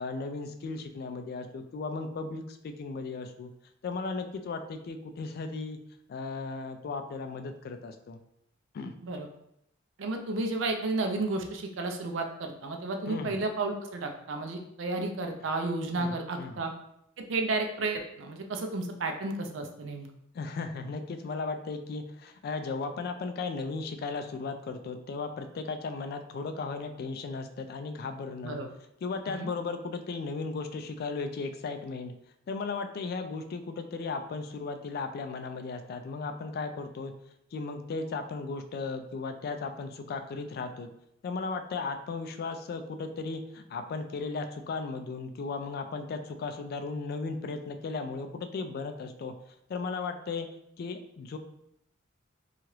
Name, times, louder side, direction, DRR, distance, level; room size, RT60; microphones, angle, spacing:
voice 1, 0.0-3.5 3.8-5.8 6.1-8.2 8.7-8.9 13.1-13.4 16.0-16.6 20.3-28.6 29.0-32.1 32.5-37.1 37.5-40.9 41.2-49.3 49.7-50.5 50.8-51.4, left 4 dB, 55° left, 7 dB, 0.3 m, -36 dB
voice 2, 10.0-16.7 17.2-20.1 28.4-28.7 29.3-29.5, right 2 dB, 70° right, 4 dB, 0.4 m, -32 dB
2.8 x 2.3 x 3.1 m, 0.77 s
head